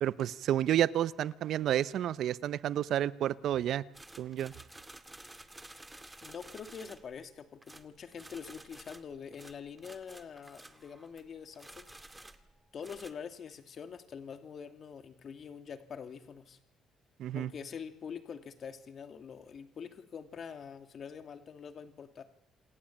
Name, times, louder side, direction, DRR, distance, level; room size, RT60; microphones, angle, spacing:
voice 1, 0.0-3.8 4.2-4.5 17.2-17.5, right 11 dB, 75° right, 17 dB, 0.9 m, -30 dB
sound 1, 3.9-7.2 7.6-11.3 11.5-13.1, right 1 dB, 10° right, 2.3 m, -52 dB
voice 2, 6.2-11.9 12.7-16.6 17.3-22.2, left 6 dB, 55° left, 7 dB, 2.8 m, -45 dB
28.0 x 17.5 x 8.8 m, 0.81 s
cardioid pair, 90°, 0 cm